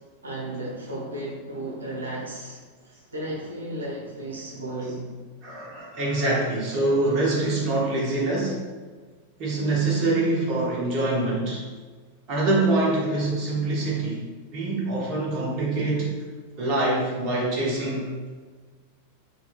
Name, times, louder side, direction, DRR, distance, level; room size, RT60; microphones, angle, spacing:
voice 1, 0.2-5.1, right 1 dB, 70° right, -3 dB, 0.8 m, -34 dB
voice 2, 5.4-8.6 9.4-11.6 12.3-14.2 14.5-16.1 16.6-18.1, right 2 dB, 40° right, -3 dB, 0.7 m, -24 dB
3.9 x 2.7 x 2.3 m, 1.4 s
figure-of-eight pair, 90°, 0 cm